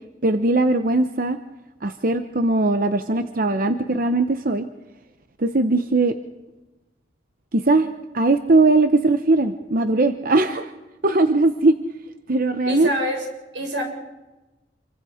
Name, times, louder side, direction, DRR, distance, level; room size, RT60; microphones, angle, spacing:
voice 1, 0.2-1.4 1.8-4.7 5.4-6.1 7.5-10.7 11.0-11.8 12.3-12.9, right 2 dB, 50° right, 9 dB, 0.9 m, -19 dB
voice 2, 12.7-13.3 13.5-13.8, equal, 85° right, 1 dB, 7.2 m, -25 dB
27.5 x 23.5 x 5.1 m, 1.1 s
head